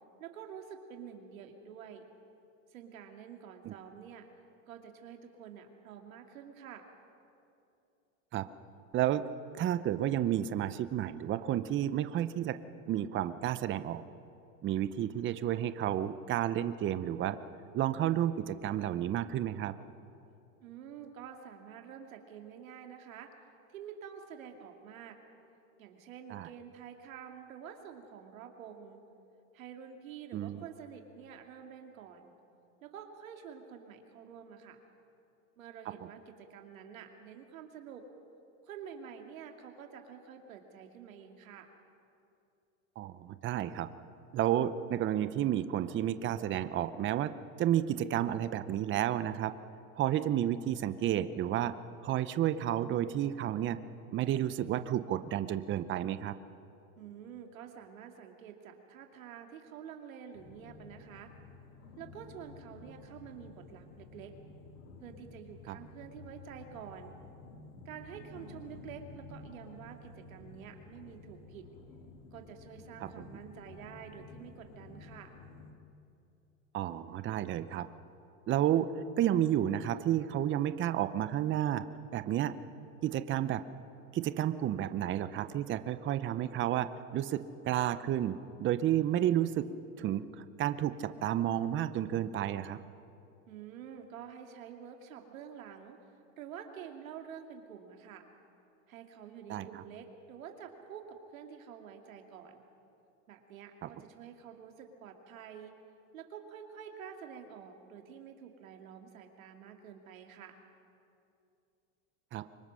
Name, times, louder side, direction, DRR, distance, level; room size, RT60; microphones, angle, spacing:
voice 1, 0.2-2.1 2.7-4.3 4.7-6.9 20.6-23.3 23.7-25.2 25.8-29.0 29.5-32.3 32.8-34.8 35.6-38.1 38.6-41.7 57.0-61.3 62.0-64.4 65.0-67.2 67.8-71.7 72.3-75.3 93.5-96.1 96.4-98.3 98.9-102.6 103.3-105.8 106.1-110.6, right 8 dB, 90° right, 4 dB, 2.5 m, -48 dB
voice 2, 8.9-9.2 9.6-12.6 12.9-14.0 14.6-17.4 17.7-19.7 26.3-26.5 30.3-30.6 43.0-43.9 44.3-47.3 47.6-49.5 50.0-51.7 52.0-53.8 54.1-56.3 65.7-65.8 73.0-73.2 76.7-77.9 78.5-81.8 82.1-82.5 83.0-83.6 84.1-89.6 90.0-92.8 99.5-99.8 103.8-103.9 112.3-112.5, right 11 dB, 30° right, 12 dB, 0.7 m, -31 dB
sound 1, 60.3-75.7, left 3 dB, 75° left, 2.5 m, -52 dB
24.5 x 21.0 x 6.4 m, 2.6 s
supercardioid pair, 120°, 40 cm